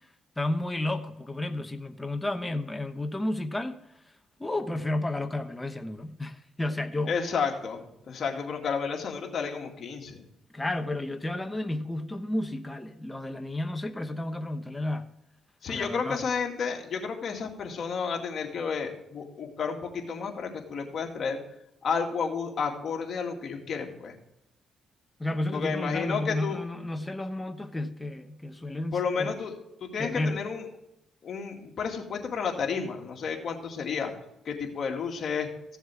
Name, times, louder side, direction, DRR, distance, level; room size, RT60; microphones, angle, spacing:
voice 1, 0.4-3.8 4.4-7.2 10.5-15.1 15.7-16.2 25.2-29.3 30.0-30.4, left 1 dB, 10° left, 1.0 m, -32 dB
voice 2, 7.1-10.3 15.6-21.4 21.8-24.1 25.5-26.6 28.9-29.5 29.8-30.6 31.2-34.1 34.5-35.5, left 5 dB, 55° left, 2.2 m, -31 dB
15.0 x 7.2 x 3.6 m
cardioid pair, 90°, 0 cm